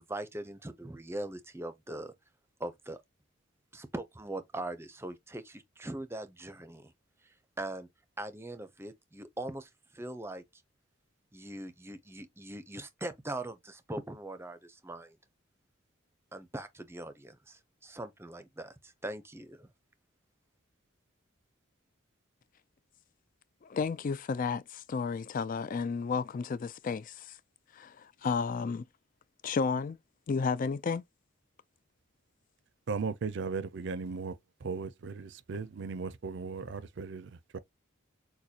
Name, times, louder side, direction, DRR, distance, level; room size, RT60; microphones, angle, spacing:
voice 1, 0.0-2.1 2.6-3.0 3.7-6.9 7.2-7.9 8.2-10.6 11.3-15.2 16.3-19.7, right 1 dB, 10° right, 0.6 m, -41 dB
voice 2, 23.6-27.3 27.7-28.8 29.4-30.0 30.3-31.0, left 5 dB, 40° left, 0.3 m, -32 dB
voice 3, 32.9-34.4 34.6-37.6, right 4 dB, 60° right, 0.5 m, -37 dB
6.5 x 2.2 x 2.8 m
head